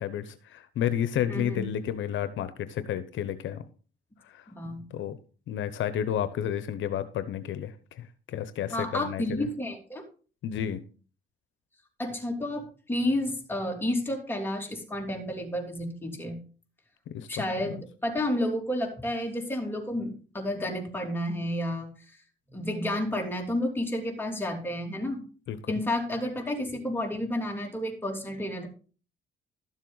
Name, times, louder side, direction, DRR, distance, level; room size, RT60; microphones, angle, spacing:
voice 1, 0.0-3.6 4.2-4.4 4.9-5.2 5.5-9.4 10.4-10.8 17.1-17.7 25.5-25.8, left 10 dB, 75° left, 12 dB, 0.8 m, -31 dB
voice 2, 1.3-1.7 4.6-4.9 8.7-10.0 12.0-16.4 17.3-21.9 22.5-25.3 25.7-28.7, left 1 dB, 10° left, 1 dB, 2.9 m, -31 dB
12.5 x 7.3 x 4.0 m, 0.39 s
cardioid pair, 90°, 20 cm